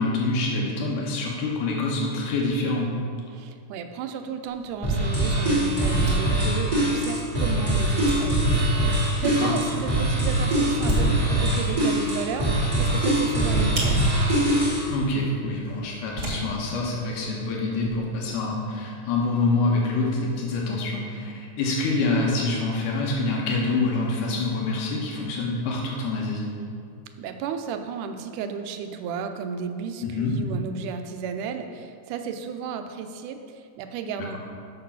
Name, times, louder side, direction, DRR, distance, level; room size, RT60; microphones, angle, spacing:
voice 1, 0.0-2.9 9.2-9.5 14.9-26.4 30.0-30.4, left 3 dB, 90° left, -2 dB, 2.6 m, -26 dB
voice 2, 3.3-14.2 27.2-34.4, right 6 dB, 90° right, 7 dB, 2.1 m, -33 dB
sound 1, 4.5-18.0, right 1 dB, 40° right, 2.1 m, -36 dB
sound 2, 4.8-14.9, right 1 dB, 10° right, 1.4 m, -23 dB
6.8 x 6.6 x 5.6 m, 2.3 s
omnidirectional pair, 3.5 m